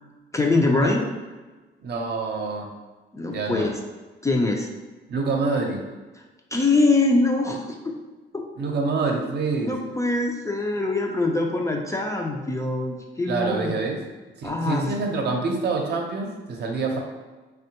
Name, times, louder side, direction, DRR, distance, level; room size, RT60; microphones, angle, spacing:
voice 1, 0.3-1.0 3.1-3.7 4.2-4.7 6.5-8.0 8.3-8.5 9.6-13.8 14.4-14.9, left 2 dB, 15° left, 0 dB, 0.4 m, -23 dB
voice 2, 1.8-2.7 3.2-3.7 5.1-5.8 8.6-9.7 13.3-14.0 14.4-17.0, right 3 dB, 55° right, 1 dB, 0.7 m, -26 dB
3.5 x 2.2 x 2.8 m, 1.2 s
cardioid pair, 90°, 20 cm